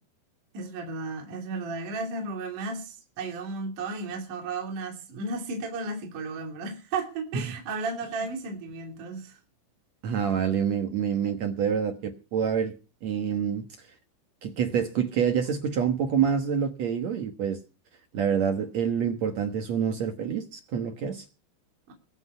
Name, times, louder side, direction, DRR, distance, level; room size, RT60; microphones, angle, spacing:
voice 1, 0.5-9.4 21.9-22.0, right 3 dB, 50° right, 4.1 m, -34 dB
voice 2, 10.0-12.7 13.0-13.6 14.4-17.6 18.1-21.2, right 7 dB, 70° right, 1.6 m, -27 dB
23.0 x 8.1 x 5.7 m
omnidirectional pair, 5.2 m